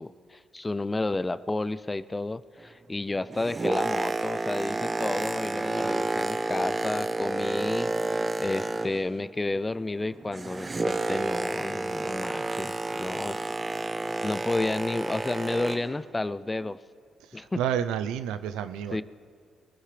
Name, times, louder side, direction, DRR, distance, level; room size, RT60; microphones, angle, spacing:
voice 1, 0.0-13.5 14.0-16.8 17.3-17.6 18.9-19.0, left 2 dB, 20° left, 15 dB, 0.5 m, -31 dB
Boat Water vehicle, 3.1-9.3 9.5-16.0 16.6-16.8, right 2 dB, 30° right, 0.8 m, -30 dB
voice 2, 17.6-19.0, right 9 dB, 90° right, 12 dB, 0.5 m, -29 dB
22.5 x 14.5 x 3.4 m, 2.1 s
cardioid pair, 70°, 0 cm